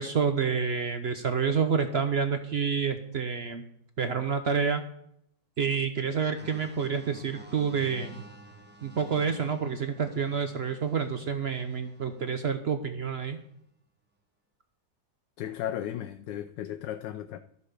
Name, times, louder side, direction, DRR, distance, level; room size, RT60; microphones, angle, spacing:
voice 1, 0.0-3.6 4.0-4.8 5.6-8.2 8.8-13.4, right 6 dB, 65° right, 0.6 m, -28 dB
sound 1, 6.4-12.4 13.1-13.4, right 1 dB, 10° right, 0.6 m, -50 dB
voice 2, 15.4-17.4, left 11 dB, 80° left, 1.2 m, -35 dB
12.5 x 5.5 x 6.5 m
omnidirectional pair, 1.9 m